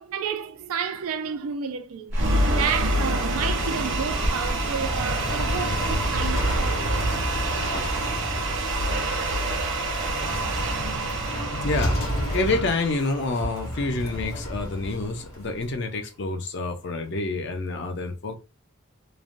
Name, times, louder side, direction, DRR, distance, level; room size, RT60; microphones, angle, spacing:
voice 1, 0.0-2.1 2.4-6.9, right 6 dB, 80° right, 0.4 m, -31 dB
sound 1, 2.1-8.2, equal, 10° right, 0.4 m, -41 dB
sound 2, 2.1-14.3, right 1 dB, 60° right, 0.9 m, -27 dB
sound 3, 3.9-15.7, equal, 70° left, 1.3 m, -31 dB
voice 2, 11.6-12.0 12.3-18.4, left 2 dB, 55° left, 0.5 m, -28 dB
3.2 x 2.1 x 2.5 m
head